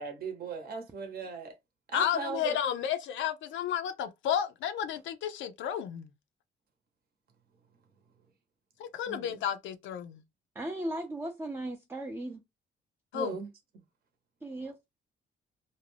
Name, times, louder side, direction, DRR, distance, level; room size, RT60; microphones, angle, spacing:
voice 1, 0.0-1.6 1.9-2.6 9.1-9.4 13.1-13.5, right 5 dB, 50° right, 0.8 m, -38 dB
voice 2, 1.9-6.1 8.8-10.2 13.1-13.4, left 9 dB, 75° left, 0.4 m, -32 dB
voice 3, 10.6-12.4 14.4-14.8, right 1 dB, 10° right, 0.4 m, -36 dB
2.5 x 2.1 x 3.2 m
cardioid pair, 90°, 20 cm